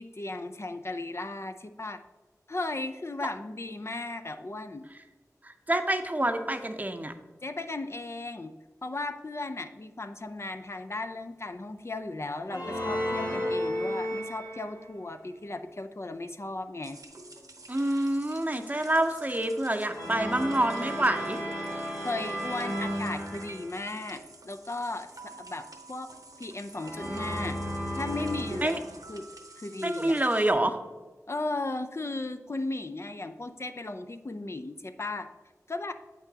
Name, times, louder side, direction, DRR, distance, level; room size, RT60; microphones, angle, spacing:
voice 1, 0.0-2.0 2.5-4.9 7.4-8.6 8.8-17.0 22.0-25.1 25.4-26.1 26.4-27.6 28.0-28.8 29.1-29.2 29.6-30.1 31.3-35.3 35.7-35.9, left 2 dB, 45° left, 8 dB, 0.4 m, -36 dB
voice 2, 5.4-7.1 17.7-21.4 28.6-28.8 29.8-30.8, right 1 dB, 25° right, 7 dB, 0.6 m, -27 dB
sound 1, 12.4-14.9 19.9-23.9 26.7-29.2, equal, 90° left, 2.0 m, -34 dB
sound 2, 16.8-30.5, right 2 dB, 75° right, 0.8 m, -48 dB
7.8 x 5.9 x 2.8 m, 1.2 s
wide cardioid pair, 55°, 6 cm